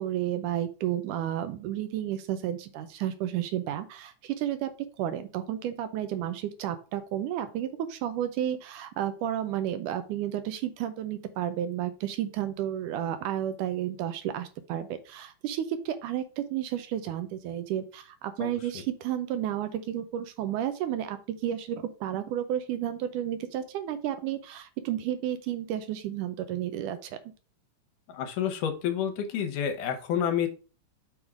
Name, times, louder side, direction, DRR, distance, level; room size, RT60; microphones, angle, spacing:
voice 1, 0.0-4.7 5.0-27.2, right 11 dB, 80° right, 10 dB, 2.1 m, -32 dB
voice 2, 18.4-18.8 28.1-30.5, left 8 dB, 75° left, 5 dB, 2.4 m, -29 dB
6.3 x 3.6 x 4.8 m, 0.35 s
omnidirectional pair, 3.8 m